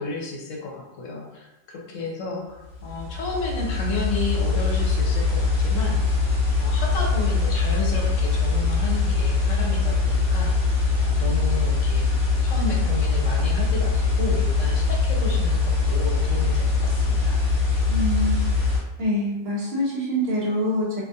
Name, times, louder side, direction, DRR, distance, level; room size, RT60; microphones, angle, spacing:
voice 1, 0.0-6.0 6.6-17.4, left 3 dB, 80° left, 0 dB, 1.0 m, -32 dB
sound 1, 2.7-18.8, left 4 dB, 60° left, 1.1 m, -22 dB
voice 2, 17.9-18.4 19.0-21.0, equal, 60° right, -3 dB, 0.8 m, -25 dB
2.3 x 2.3 x 2.7 m, 1.0 s
omnidirectional pair, 1.3 m